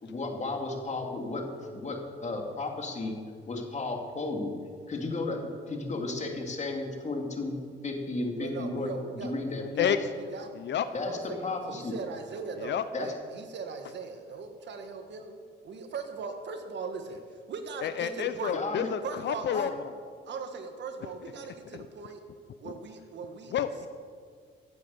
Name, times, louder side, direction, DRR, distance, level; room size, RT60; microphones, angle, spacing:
voice 1, 0.0-1.4 1.7-3.2 3.5-4.5 4.9-5.4 5.7-7.6 7.8-9.9 10.9-12.0 12.9-13.1 18.5-18.9 19.5-19.7, left 2 dB, 35° left, 2 dB, 2.7 m, -33 dB
voice 2, 8.4-9.9 10.3-10.5 11.0-17.2 17.5-18.6 19.0-19.6 20.3-22.2 22.6-23.6, right 5 dB, 60° right, 6 dB, 1.7 m, -39 dB
voice 3, 9.6-10.0 10.5-10.8 12.6-12.8 17.8-19.9 21.7-21.9 22.6-22.7 23.5-23.9, left 9 dB, 65° left, 12 dB, 0.7 m, -30 dB
16.0 x 8.3 x 7.2 m, 2.1 s
cardioid pair, 90°, 20 cm